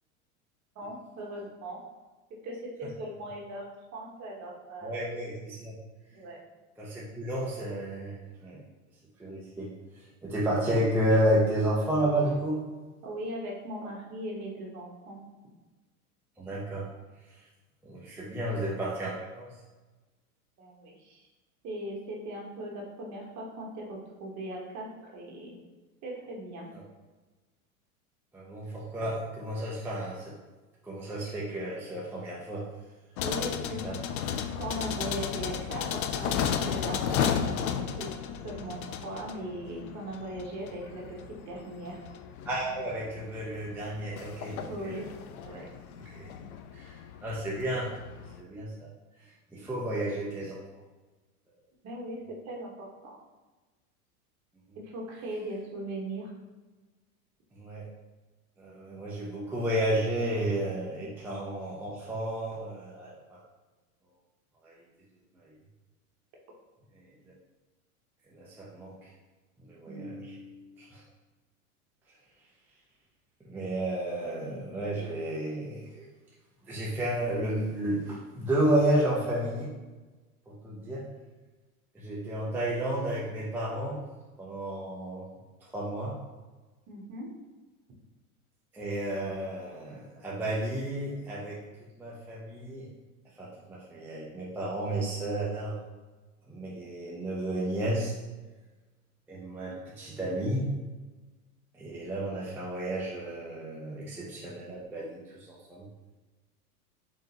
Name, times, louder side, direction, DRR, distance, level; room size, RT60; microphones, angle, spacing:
voice 1, 0.7-1.8 2.3-3.7 3.9-5.0 6.1-6.4 13.0-15.2 20.6-21.3 21.6-25.6 26.0-26.7 33.2-33.8 34.5-42.0 44.5-45.1 45.4-45.7 51.8-53.2 54.7-56.3 86.9-87.3, right 1 dB, 40° right, -2 dB, 1.2 m, -39 dB
voice 2, 4.8-5.8 6.8-8.6 9.2-12.7 13.8-13.9 16.4-16.9 17.8-19.5 28.3-30.4 30.8-32.7 33.8-33.9 42.4-44.6 44.8-45.0 46.2-46.3 46.7-47.9 48.4-48.9 49.5-50.6 57.5-57.9 58.6-63.4 64.6-64.8 65.4-65.5 66.9-67.0 68.3-69.1 69.6-71.0 73.4-76.1 76.6-79.7 80.5-81.1 81.9-84.0 84.4-85.3 85.6-86.2 88.7-91.6 92.0-92.9 93.4-95.8 96.5-98.1 99.3-100.8 101.7-105.9, right 1 dB, 5° right, -6 dB, 0.5 m, -32 dB
sound 1, 33.2-48.4, left 8 dB, 75° left, 0.5 m, -34 dB
3.9 x 3.6 x 2.9 m, 1.2 s
hypercardioid pair, 105°, 44 cm